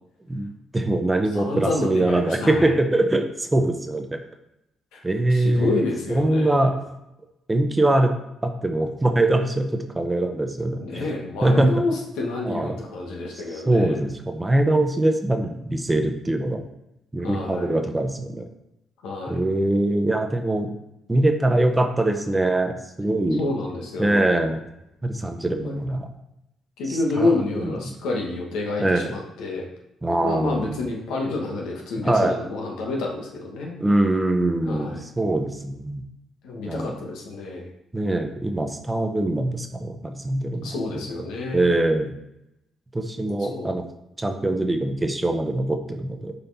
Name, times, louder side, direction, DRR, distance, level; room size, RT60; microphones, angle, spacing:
voice 1, 0.3-4.2 5.0-5.8 6.1-6.7 7.5-8.1 8.4-11.1 11.4-11.7 12.4-12.8 13.5-16.6 17.1-18.5 19.3-20.7 21.1-23.4 24.0-24.6 25.0-26.1 26.9-27.3 27.5-27.9 28.8-29.2 30.0-30.8 32.0-32.4 33.8-36.0 36.6-36.9 37.9-41.1 41.5-42.1 42.9-43.8 44.2-46.3, right 1 dB, 15° right, 6 dB, 0.7 m, -23 dB
voice 2, 1.3-2.8 4.9-5.0 5.3-6.7 10.8-13.9 17.2-17.8 19.0-19.5 23.4-24.5 25.6-25.7 26.8-29.7 30.2-33.8 34.6-35.0 36.4-37.7 40.6-41.7 43.5-43.7, left 2 dB, 90° left, 0 dB, 1.2 m, -28 dB
5.4 x 4.3 x 4.1 m, 0.86 s
cardioid pair, 90°, 0 cm